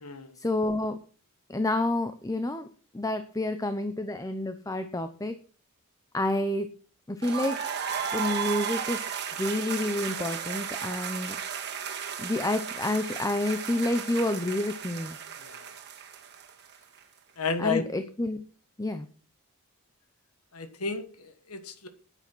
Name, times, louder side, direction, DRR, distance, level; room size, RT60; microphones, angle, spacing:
voice 1, 0.4-1.0 1.5-2.7 2.9-5.3 6.1-6.7 7.1-7.6 8.1-11.4 12.2-15.2 17.6-18.4 18.8-19.1, left 1 dB, 15° left, 9 dB, 0.8 m, -29 dB
sound 1, 7.2-17.0, right 7 dB, 50° right, 1.9 m, -34 dB
voice 2, 17.4-17.8 20.5-21.1 21.5-21.9, left 4 dB, 80° left, 9 dB, 1.6 m, -31 dB
10.0 x 9.6 x 6.2 m, 0.41 s
head